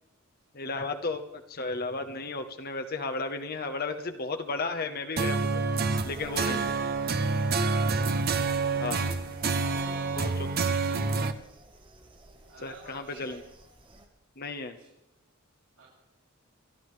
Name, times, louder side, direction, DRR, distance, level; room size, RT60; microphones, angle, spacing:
voice 1, 0.5-5.6 6.0-6.7 8.8-9.1 10.2-10.5 12.6-13.4 14.4-14.8, left 3 dB, 45° left, 6 dB, 1.1 m, -34 dB
sound 1, 5.2-11.3, right 4 dB, 50° right, 0.7 m, -27 dB
sound 2, 5.7-14.1, right 1 dB, 25° right, 1.3 m, -52 dB
voice 2, 9.6-10.0 12.5-13.4 14.7-14.9 15.8-15.9, right 3 dB, 80° right, -9 dB, 6.6 m, -53 dB
28.5 x 11.5 x 3.3 m, 0.91 s
head